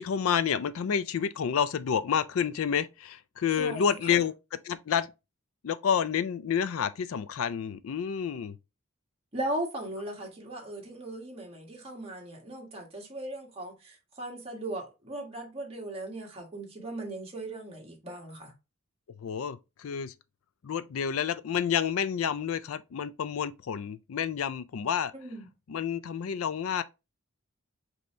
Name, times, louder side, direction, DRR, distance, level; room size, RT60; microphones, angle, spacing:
voice 1, 0.0-4.3 4.6-5.1 5.6-8.6 19.2-20.1 20.6-25.1 25.7-26.8, left 7 dB, 65° left, 0.4 m, -29 dB
voice 2, 3.6-4.2 9.3-18.5 25.1-25.5, right 1 dB, 30° right, 1.5 m, -38 dB
5.3 x 2.8 x 3.2 m
head